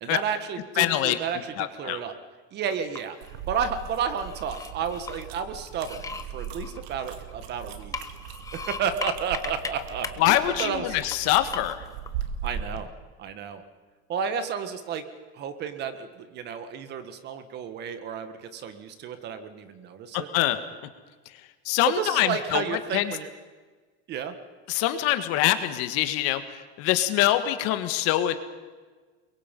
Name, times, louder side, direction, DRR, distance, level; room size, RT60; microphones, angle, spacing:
voice 1, 0.0-2.2 2.5-3.2 3.5-8.0 8.5-11.0 12.4-12.9 13.2-13.6 14.1-15.0 15.3-20.3 21.9-23.3 24.1-24.3, right 7 dB, 30° right, 10 dB, 1.6 m, -32 dB
voice 2, 0.8-1.2 1.6-2.0 10.2-11.8 20.3-20.6 21.6-22.6 22.9-23.0 24.7-26.4 26.8-28.4, left 14 dB, 50° left, 10 dB, 1.6 m, -24 dB
sound 1, 2.7-3.3 3.8-5.2 5.7-7.4 7.8-9.7 10.0-10.7 11.1-11.2 11.5-12.1, left 5 dB, 10° left, 0.8 m, -37 dB
sound 2, 3.2-12.9, right 8 dB, 70° right, 2.4 m, -39 dB
29.5 x 22.5 x 5.4 m, 1.4 s
supercardioid pair, 170°, 32 cm